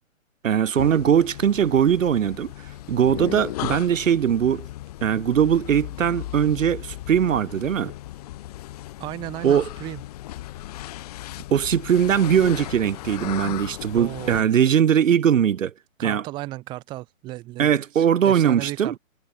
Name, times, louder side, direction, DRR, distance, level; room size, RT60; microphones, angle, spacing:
voice 1, 0.4-2.5 2.9-4.7 5.0-7.9 9.4-9.6 11.5-15.7 16.0-16.2 17.6-18.9, right 8 dB, 65° right, 1.1 m, -20 dB
sound 1, 0.8-14.4, left 15 dB, 30° left, 1.5 m, -36 dB
voice 2, 9.0-10.0 13.9-14.5 16.0-19.0, right 18 dB, 10° right, 1.1 m, -35 dB
hypercardioid pair, 155°, 41 cm